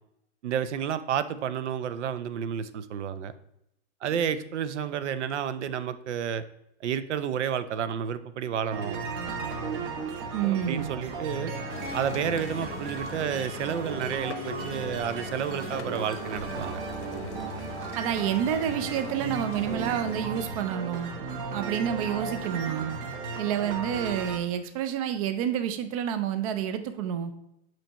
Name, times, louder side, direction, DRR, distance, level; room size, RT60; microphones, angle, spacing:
voice 1, 0.4-3.3 4.0-6.4 6.8-9.0 10.7-11.5 11.9-16.8, right 8 dB, 80° right, 13 dB, 0.6 m, -30 dB
sound 1, 8.7-24.4, right 4 dB, 50° right, 1.0 m, -35 dB
voice 2, 10.3-10.9 18.0-21.1 21.5-23.0 23.4-27.3, right 9 dB, 30° right, 10 dB, 0.4 m, -29 dB
sound 2, 11.7-20.2, left 7 dB, 80° left, 0.9 m, -42 dB
7.7 x 4.5 x 2.9 m, 0.81 s
hypercardioid pair, 150°, 35 cm